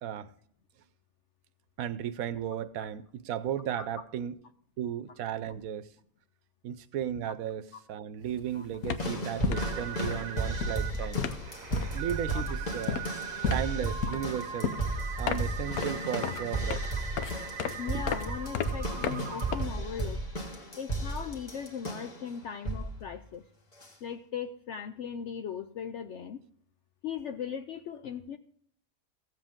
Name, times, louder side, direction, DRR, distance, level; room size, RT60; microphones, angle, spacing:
voice 1, 1.8-4.4 4.8-5.9 6.6-11.2 11.9-13.0 13.5-14.8 15.2-16.8 17.9-18.0, right 10 dB, 75° right, 1.1 m, -35 dB
sound 1, 8.2-8.4 8.7-20.1, left 7 dB, 85° left, 1.2 m, -35 dB
sound 2, 9.0-22.2 22.6-23.0 23.8-23.9, right 2 dB, 30° left, 1.5 m, -34 dB
sound 3, 9.5-19.7, right 8 dB, 55° right, 0.5 m, -41 dB
voice 2, 17.8-20.2 20.8-23.4 24.0-26.4 27.0-28.4, left 7 dB, 65° left, 0.8 m, -38 dB
16.0 x 7.6 x 3.6 m
omnidirectional pair, 1.5 m